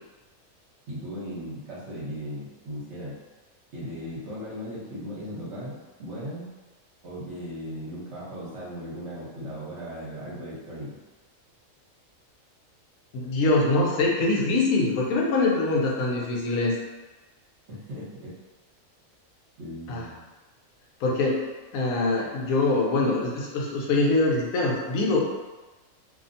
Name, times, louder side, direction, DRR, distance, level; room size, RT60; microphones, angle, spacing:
voice 1, 0.9-3.1 3.7-6.5 7.0-11.0 17.7-18.3 19.6-20.2, equal, 55° right, -8 dB, 1.1 m, -37 dB
voice 2, 13.1-16.7 19.9-20.0 21.0-21.4 21.7-25.2, left 2 dB, 85° left, -2 dB, 1.0 m, -23 dB
2.7 x 2.1 x 2.6 m, 1.2 s
omnidirectional pair, 1.4 m